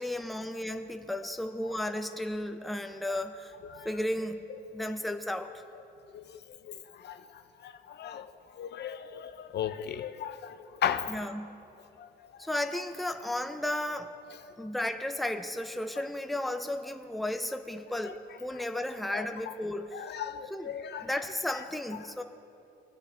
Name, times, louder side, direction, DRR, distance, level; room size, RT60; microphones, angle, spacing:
voice 1, 0.0-3.5 3.8-4.4 4.7-5.5 11.1-11.6 12.4-14.2 14.6-20.1 20.5-20.7 21.0-22.2, left 1 dB, ahead, 7 dB, 0.6 m, -34 dB
voice 2, 6.1-8.3 8.5-11.2 12.0-12.1 12.4-12.5 18.0-18.1 18.5-18.8 19.1-19.5 19.9-21.1 21.5-21.6, left 9 dB, 60° left, 10 dB, 0.6 m, -37 dB
19.0 x 10.5 x 3.4 m, 2.7 s
cardioid pair, 90°, 20 cm